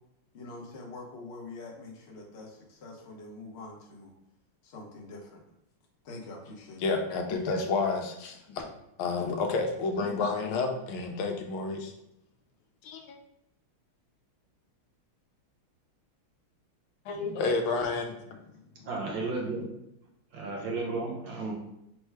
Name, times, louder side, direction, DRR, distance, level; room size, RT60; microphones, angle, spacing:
voice 1, 0.3-4.1 4.6-5.4 6.0-6.8, left 2 dB, 55° left, -1 dB, 0.7 m, -45 dB
voice 2, 6.8-8.6 9.0-11.9 12.8-13.0 17.0-18.2, left 4 dB, 85° left, 3 dB, 1.5 m, -30 dB
voice 3, 18.9-19.7 20.3-21.5, right 3 dB, 65° right, -2 dB, 1.5 m, -33 dB
4.4 x 2.2 x 4.6 m, 0.82 s
omnidirectional pair, 2.3 m